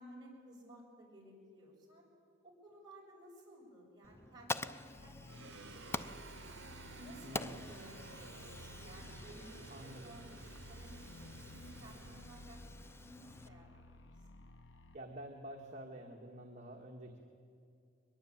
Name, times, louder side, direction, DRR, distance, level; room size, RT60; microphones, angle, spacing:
voice 1, 0.0-2.1 2.4-6.7 7.0-13.9, equal, 20° right, -3 dB, 6.8 m, -57 dB
Fire, 4.0-13.5, left 2 dB, 15° left, 0.5 m, -47 dB
sound 1, 5.0-15.0, left 2 dB, 70° left, 0.9 m, -55 dB
sound 2, 5.3-13.8, right 4 dB, 75° right, 0.8 m, -55 dB
voice 2, 7.2-7.7 9.7-10.2 14.9-17.2, right 1 dB, 40° right, 0 dB, 1.8 m, -49 dB
23.0 x 21.5 x 8.8 m, 2.4 s
head